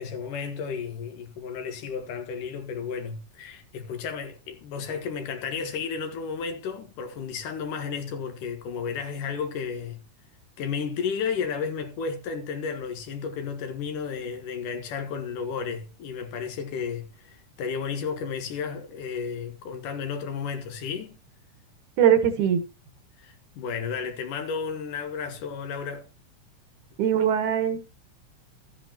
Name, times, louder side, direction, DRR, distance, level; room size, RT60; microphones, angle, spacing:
voice 1, 0.0-10.0 10.6-21.2 23.2-26.1, left 6 dB, 85° left, 3.1 m, -33 dB
voice 2, 22.0-22.6 27.0-27.8, right 9 dB, 70° right, 2.7 m, -21 dB
13.5 x 9.7 x 2.9 m
omnidirectional pair, 3.6 m